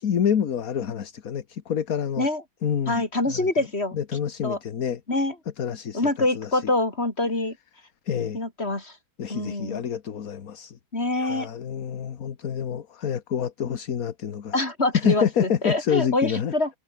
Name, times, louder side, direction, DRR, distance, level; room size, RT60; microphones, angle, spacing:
voice 1, 0.0-2.3 2.6-3.5 3.9-5.0 5.6-6.1 6.4-6.6 8.1-8.4 9.2-10.8 11.1-14.5 14.9-16.5, left 8 dB, 50° left, 1.6 m, -27 dB
voice 2, 2.9-4.0 4.4-4.6 5.1-5.4 5.9-7.6 8.3-9.0 9.3-9.8 10.9-11.5 14.5-16.7, left 2 dB, 30° left, 5.1 m, -25 dB
omnidirectional pair, 2.0 m